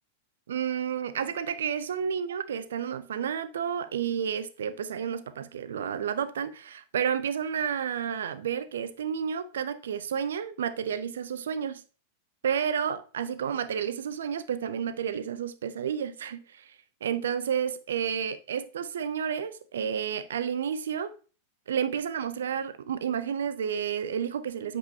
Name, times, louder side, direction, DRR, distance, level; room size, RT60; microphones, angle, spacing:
voice 1, 0.5-11.8 12.4-16.8 17.0-21.1 21.7-24.8, right 8 dB, 65° right, 0.5 m, -31 dB
7.9 x 4.9 x 2.7 m
figure-of-eight pair, 90°, 0 cm